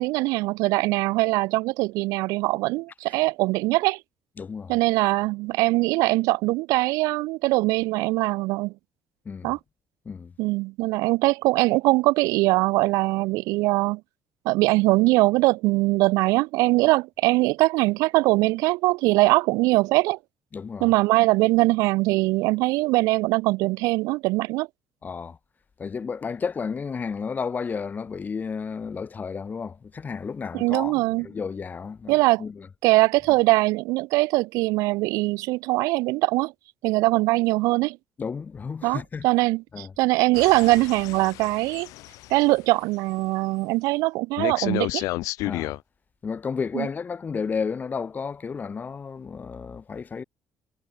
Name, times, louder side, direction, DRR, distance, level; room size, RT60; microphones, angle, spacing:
voice 1, 0.0-4.0 4.7-8.7 9.4-9.6 10.4-14.0 14.4-20.2 20.8-24.7 30.5-31.2 32.1-32.4 32.8-36.5 36.8-38.0 38.8-41.9 42.3-45.1 46.7-46.9, right 22 dB, 85° right, 1.7 m, -22 dB
voice 2, 4.4-4.7 9.2-9.5 10.0-10.3 20.5-20.9 25.0-25.4 25.8-32.7 38.2-39.3 39.7-39.9 45.4-45.8 46.2-50.2, left 5 dB, 30° left, 4.4 m, -32 dB
sound 1, 40.3-42.4 44.4-45.8, left 19 dB, 80° left, 1.8 m, -31 dB
cardioid pair, 110°, 6 cm